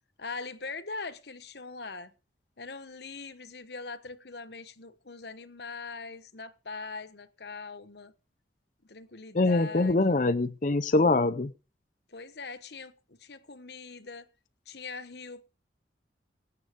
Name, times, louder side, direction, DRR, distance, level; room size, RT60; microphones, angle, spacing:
voice 1, 0.2-2.1 2.6-8.1 8.8-10.2 12.1-14.3 14.7-15.4, left 4 dB, 65° left, 1.1 m, -42 dB
voice 2, 9.3-11.5, left 2 dB, 45° left, 0.6 m, -24 dB
17.5 x 7.7 x 5.1 m
head